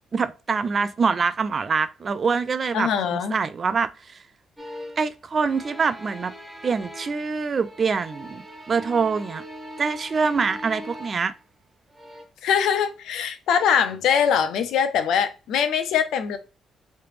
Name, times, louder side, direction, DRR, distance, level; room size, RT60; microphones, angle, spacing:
voice 1, 0.1-4.2 5.0-6.3 6.6-9.4 9.8-11.3, right 5 dB, 40° right, 0.3 m, -25 dB
voice 2, 2.7-3.4 12.4-16.4, left 8 dB, 80° left, 0.6 m, -22 dB
sound 1, 4.6-5.1 5.4-7.3 7.6-11.4 11.9-12.2, equal, 10° right, 1.1 m, -40 dB
3.2 x 2.9 x 3.1 m
cardioid pair, 90°, 0 cm